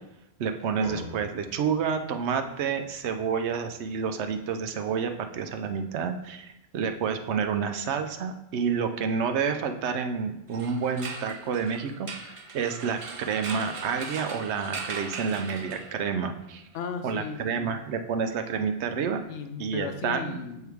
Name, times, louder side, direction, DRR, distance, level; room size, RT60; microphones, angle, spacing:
voice 1, 0.4-16.6 17.0-19.2 19.6-20.4, right 6 dB, 75° right, 6 dB, 0.9 m, -29 dB
sound 1, 0.8-5.5, left 1 dB, 30° right, 1.9 m, -47 dB
sound 2, 10.5-16.2, right 4 dB, 50° right, 0.4 m, -39 dB
voice 2, 16.7-17.7 19.3-20.7, left 6 dB, 80° left, 8 dB, 0.9 m, -36 dB
6.3 x 4.6 x 3.5 m, 0.86 s
omnidirectional pair, 1.2 m